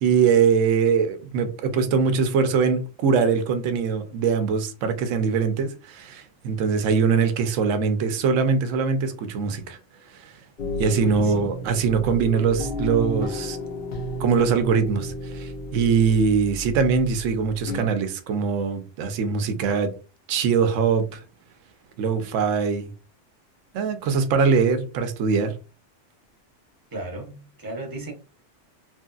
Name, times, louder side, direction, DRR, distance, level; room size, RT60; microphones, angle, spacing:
voice 1, 0.0-9.8 10.1-10.3 10.8-13.6 14.2-19.9 20.3-21.2 22.0-22.9 23.7-25.5, right 5 dB, 90° right, 0.9 m, -22 dB
sound 1, 10.6-17.9, equal, 55° left, 0.8 m, -32 dB
voice 2, 11.0-11.5 26.9-28.1, right 2 dB, 20° right, 0.7 m, -35 dB
3.0 x 2.6 x 2.3 m
omnidirectional pair, 1.3 m